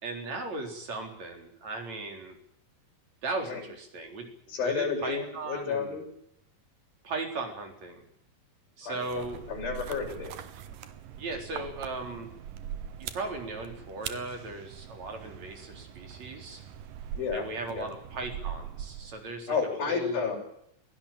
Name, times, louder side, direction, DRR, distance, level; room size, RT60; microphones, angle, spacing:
voice 1, 0.0-2.4 3.2-6.0 7.0-8.0 8.8-9.4 11.2-12.3 13.0-16.6 17.3-19.5 19.9-20.2, right 3 dB, 50° right, 4 dB, 5.1 m, -37 dB
voice 2, 4.5-6.1 8.8-10.3 17.2-17.5 17.7-17.9 19.5-20.4, left 5 dB, 90° left, 2 dB, 8.1 m, -31 dB
sound 1, 9.0-19.4, right 9 dB, 75° right, 3.0 m, -42 dB
21.5 x 17.5 x 8.8 m, 0.74 s
omnidirectional pair, 4.1 m